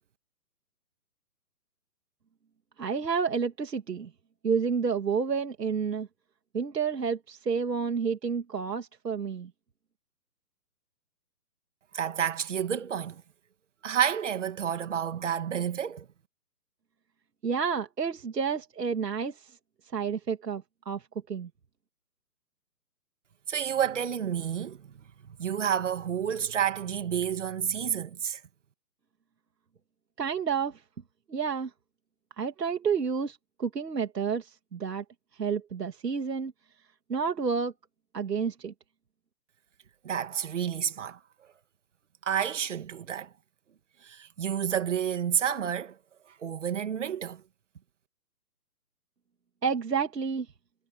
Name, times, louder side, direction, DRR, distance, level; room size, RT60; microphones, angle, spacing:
voice 1, 2.8-4.1 4.4-6.1 6.5-9.5 17.4-19.6 19.9-21.5 30.2-30.8 31.3-31.7 32.4-35.0 35.3-36.5 37.1-37.7 38.1-38.7 49.6-50.5, right 6 dB, 75° right, 2.9 m, -30 dB
voice 2, 11.9-13.2 13.8-16.1 23.5-24.9 25.3-28.4 40.0-41.2 42.2-43.3 44.0-46.0 46.4-47.4, right 8 dB, 45° right, 2.4 m, -30 dB
hypercardioid pair, 170°, 49 cm